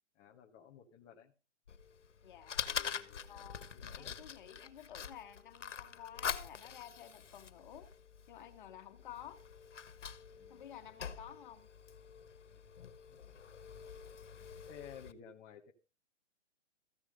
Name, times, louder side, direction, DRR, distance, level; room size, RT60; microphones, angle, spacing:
voice 1, 0.1-1.3 2.7-4.3 4.6-4.7 10.4-10.6 12.5-12.6 13.1-13.2 14.7-15.7, left 8 dB, 15° left, 0.8 m, -55 dB
Fire, 1.7-15.1, left 7 dB, 90° left, 1.4 m, -45 dB
voice 2, 2.2-2.7 3.3-7.9 8.3-9.4 10.5-11.7, left 10 dB, 45° left, 1.7 m, -52 dB
14.5 x 6.9 x 5.2 m
hypercardioid pair, 160°, 35 cm